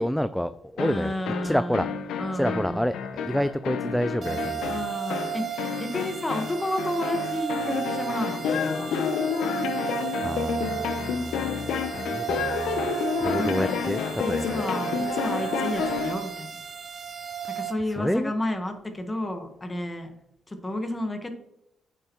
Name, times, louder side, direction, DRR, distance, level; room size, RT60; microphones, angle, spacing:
voice 1, 0.0-1.9 2.3-4.8 10.2-12.9 13.2-14.6 17.9-18.3, equal, 5° left, 13 dB, 0.3 m, -29 dB
sound 1, 0.8-16.3, left 6 dB, 80° left, 0.8 m, -30 dB
voice 2, 0.8-1.8 2.2-2.8 4.7-8.9 13.4-13.9 14.2-16.5 17.5-20.1 20.5-21.3, left 1 dB, 20° left, 6 dB, 1.3 m, -31 dB
sound 2, 4.2-17.7, right 9 dB, 45° right, 1.4 m, -34 dB
8.3 x 6.9 x 3.1 m, 0.81 s
cardioid pair, 90°, 0 cm